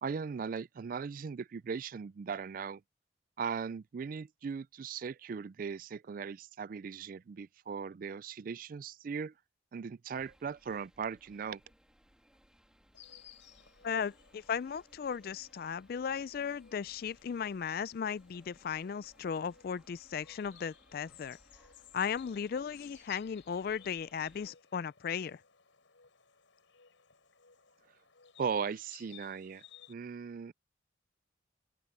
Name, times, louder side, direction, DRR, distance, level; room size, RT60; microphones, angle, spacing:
voice 1, 0.0-2.8 3.4-9.3 9.7-11.6 28.4-29.6 29.9-30.5, right 6 dB, 45° right, 0.3 m, -38 dB
sound 1, 10.1-24.5, equal, 5° right, 2.2 m, -65 dB
Insect, 12.9-29.9, left 8 dB, 85° left, 4.9 m, -60 dB
voice 2, 13.8-21.4 21.9-25.4, left 7 dB, 50° left, 0.3 m, -36 dB
open air
head